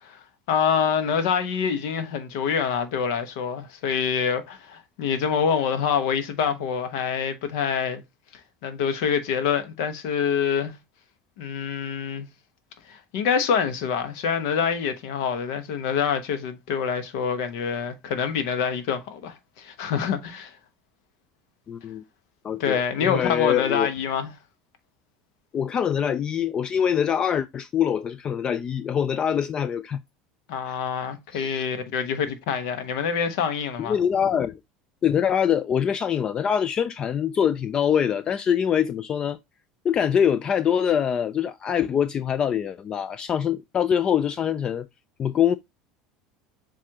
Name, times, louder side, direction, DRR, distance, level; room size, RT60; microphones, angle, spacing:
voice 1, 0.5-8.0 8.6-10.7 11.4-12.3 12.9-20.5 22.6-24.3 30.5-34.0, left 7 dB, 75° left, 0.9 m, -26 dB
voice 2, 21.7-22.0 22.4-23.9 25.5-30.0 30.7-30.8 31.3-31.6 33.8-34.5 35.0-39.4 39.8-44.9 45.2-45.6, left 8 dB, 35° left, 0.3 m, -24 dB
7.3 x 2.5 x 2.8 m
supercardioid pair, 95°, 2 cm